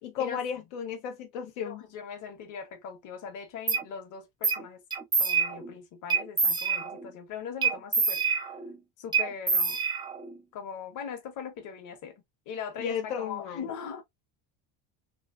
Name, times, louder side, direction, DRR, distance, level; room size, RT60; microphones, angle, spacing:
voice 1, 0.0-1.8 12.8-13.7, left 7 dB, 80° left, 0.8 m, -34 dB
voice 2, 1.6-4.8 5.2-8.2 9.0-9.8 10.5-12.1 12.5-14.0, left 7 dB, 50° left, 1.2 m, -40 dB
sound 1, 3.7-3.8 4.4-4.6 4.9-5.7 6.1-7.1 7.6-8.8 9.1-10.4, right 5 dB, 10° right, 0.5 m, -27 dB
3.2 x 2.5 x 2.4 m
cardioid pair, 120°, 40 cm